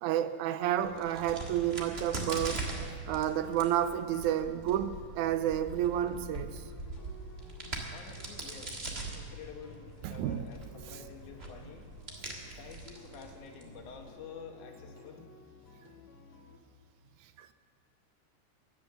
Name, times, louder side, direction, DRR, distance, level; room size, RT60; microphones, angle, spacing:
voice 1, 0.0-2.7 3.1-6.6 10.0-10.5 17.4-17.5, right 11 dB, 80° right, 12 dB, 2.0 m, -30 dB
Crack, 0.8-14.0, right 2 dB, 25° right, 1.4 m, -42 dB
sound 1, 3.6-16.6, left 2 dB, 50° left, 2.3 m, -56 dB
voice 2, 7.9-11.9 12.4-15.3, left 5 dB, 75° left, 3 dB, 2.9 m, -49 dB
15.5 x 11.5 x 6.8 m, 2.3 s
omnidirectional pair, 3.5 m